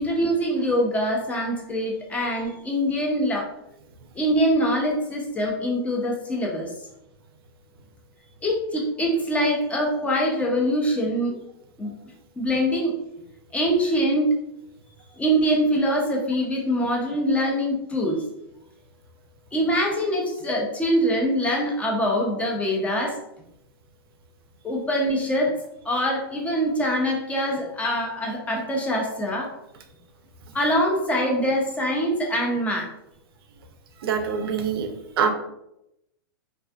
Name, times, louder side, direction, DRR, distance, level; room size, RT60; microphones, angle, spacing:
voice 1, 0.0-3.5 4.1-6.7 8.4-11.4 11.8-11.9 12.4-12.9 13.5-14.3 15.2-18.2 19.5-23.2 24.6-25.5 25.8-29.5 30.5-32.9, equal, 10° left, 0 dB, 0.6 m, -24 dB
voice 2, 34.0-35.3, right 6 dB, 70° right, 6 dB, 0.5 m, -25 dB
2.6 x 2.4 x 2.3 m, 0.83 s
hypercardioid pair, 125°, 13 cm